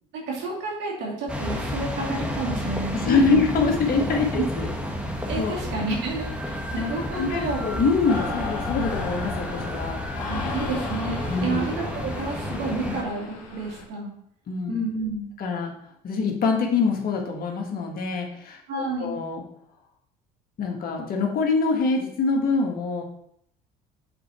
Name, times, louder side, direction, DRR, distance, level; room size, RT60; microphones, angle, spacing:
voice 1, 0.1-3.4 5.3-7.8 10.3-14.1 14.7-15.3 18.7-19.1, right 3 dB, 70° right, -2 dB, 2.6 m, -30 dB
sound 1, 1.3-13.0, left 1 dB, 5° right, 1.4 m, -31 dB
voice 2, 2.9-4.7 5.0-5.5 7.1-9.9 11.3-11.6 12.9-13.0 14.5-14.7 15.4-15.7 16.0-19.4 20.6-23.0, left 4 dB, 55° left, 1 dB, 1.8 m, -25 dB
sound 2, 8.1-13.8, left 4 dB, 85° left, 1.7 m, -34 dB
7.6 x 4.3 x 4.3 m, 0.69 s
supercardioid pair, 80°, 18 cm